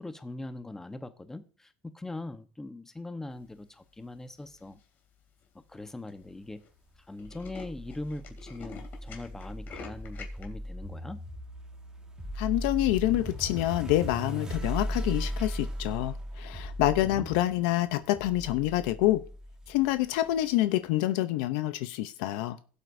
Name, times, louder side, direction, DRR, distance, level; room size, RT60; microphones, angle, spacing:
voice 1, 0.0-4.8 5.7-6.6 7.1-11.2 17.1-17.3, left 2 dB, 10° left, 1.0 m, -41 dB
Tools, 4.4-4.8 5.4-5.5 5.7-5.8 6.1-6.3 6.6-6.7 7.0-10.4, left 5 dB, 45° left, 2.6 m, -47 dB
sound 1, 7.2-20.4, equal, 15° right, 1.7 m, -38 dB
voice 2, 12.4-19.2 19.7-22.6, left 15 dB, 80° left, 0.6 m, -27 dB
17.5 x 7.8 x 2.6 m
supercardioid pair, 115°, 5 cm